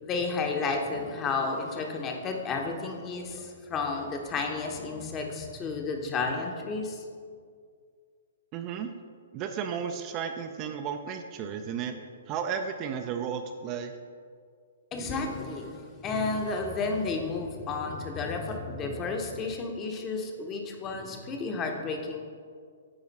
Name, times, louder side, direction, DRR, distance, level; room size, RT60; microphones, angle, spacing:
voice 1, 0.0-7.0 14.9-22.2, left 4 dB, 25° left, 3 dB, 0.9 m, -32 dB
voice 2, 8.5-8.9 9.3-13.9, right 7 dB, 30° right, 6 dB, 0.5 m, -34 dB
8.8 x 4.9 x 4.1 m, 2.1 s
hypercardioid pair, 135°, 0 cm